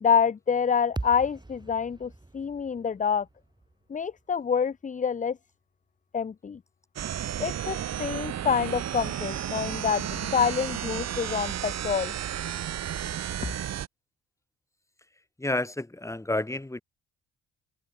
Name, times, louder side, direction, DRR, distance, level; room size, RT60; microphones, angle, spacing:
voice 1, 0.0-3.3 3.9-5.4 6.1-6.6 7.4-12.1, left 7 dB, 25° left, 0.7 m, -27 dB
sound 1, 1.0-5.2, right 2 dB, 15° right, 3.1 m, -42 dB
sound 2, 7.0-13.9, right 10 dB, 60° right, 1.7 m, -33 dB
voice 2, 15.4-16.8, left 2 dB, 10° left, 2.0 m, -30 dB
open air
cardioid pair, 90°, 30 cm